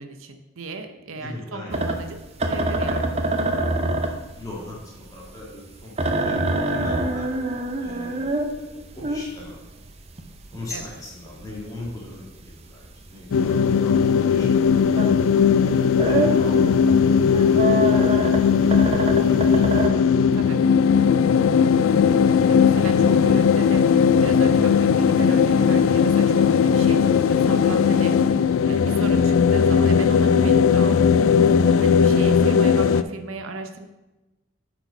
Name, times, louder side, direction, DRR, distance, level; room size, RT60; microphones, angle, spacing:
voice 1, 0.0-2.2 2.5-3.2 10.7-10.8 20.3-20.6 22.5-23.9 24.2-33.9, right 3 dB, 75° right, 7 dB, 0.7 m, -35 dB
voice 2, 1.1-2.0 4.3-6.4 6.6-7.3 7.8-8.6 8.9-9.6 10.5-14.9 15.6-17.6 18.7-19.7, left 1 dB, 15° left, -5 dB, 1.8 m, -39 dB
sound 1, 1.7-15.3 15.6-19.9, right 2 dB, 30° right, 0.6 m, -26 dB
sound 2, 13.3-33.0, left 6 dB, 70° left, 0.3 m, -18 dB
8.2 x 4.5 x 5.1 m, 1.1 s
head